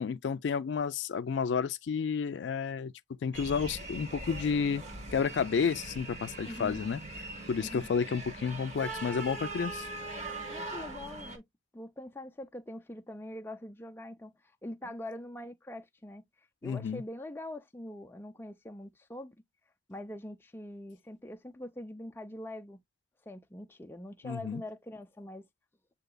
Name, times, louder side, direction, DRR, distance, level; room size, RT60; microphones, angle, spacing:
voice 1, 0.0-2.9 3.2-4.8 5.1-7.0 7.5-9.9 16.6-17.0 24.2-24.6, left 6 dB, 80° left, 0.4 m, -31 dB
sound 1, 3.3-11.4, right 2 dB, 40° right, 1.2 m, -41 dB
voice 2, 6.4-6.8 7.6-7.9 10.5-11.4 11.7-16.2 16.6-19.4 19.9-22.8 23.3-25.5, left 1 dB, 15° left, 0.5 m, -43 dB
7.8 x 2.8 x 2.2 m
head